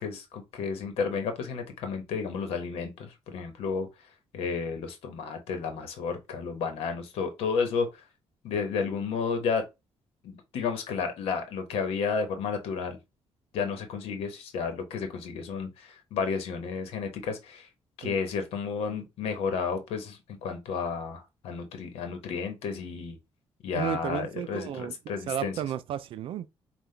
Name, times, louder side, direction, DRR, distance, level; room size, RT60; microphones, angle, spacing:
voice 1, 0.0-3.9 4.3-7.9 8.4-9.6 10.2-13.0 13.5-17.7 18.0-23.2 23.6-25.5, left 5 dB, 90° left, 1.0 m, -32 dB
voice 2, 23.7-24.9 25.3-26.5, right 10 dB, 65° right, 0.4 m, -33 dB
5.7 x 2.4 x 3.2 m
cardioid pair, 140°, 10 cm